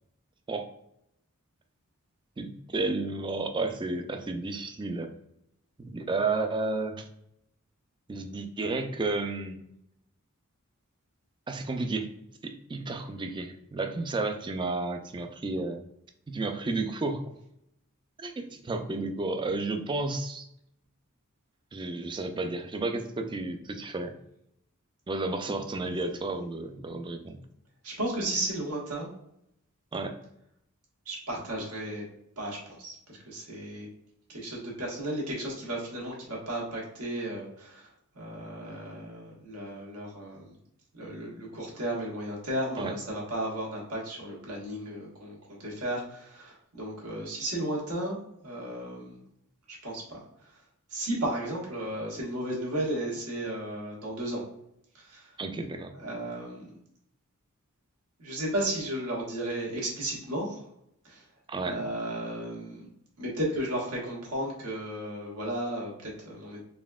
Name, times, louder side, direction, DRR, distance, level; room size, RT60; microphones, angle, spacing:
voice 1, 2.4-5.1 5.8-7.1 8.1-9.6 11.5-12.1 12.4-15.8 16.3-17.3 18.2-20.5 21.7-24.1 25.1-27.4 29.9-30.2 42.8-42.9 55.4-55.9 61.5-61.8, right 3 dB, 20° right, 6 dB, 0.4 m, -32 dB
voice 2, 27.8-29.1 31.0-32.0 32.4-33.9 34.3-37.9 38.1-40.6 40.9-49.2 49.8-50.2 50.5-50.6 50.9-54.4 54.9-55.3 55.9-56.7 58.2-60.6 61.0-61.2 61.6-62.9 63.2-66.6, right 1 dB, 85° right, -4 dB, 1.5 m, -34 dB
4.1 x 3.5 x 2.3 m, 0.76 s
head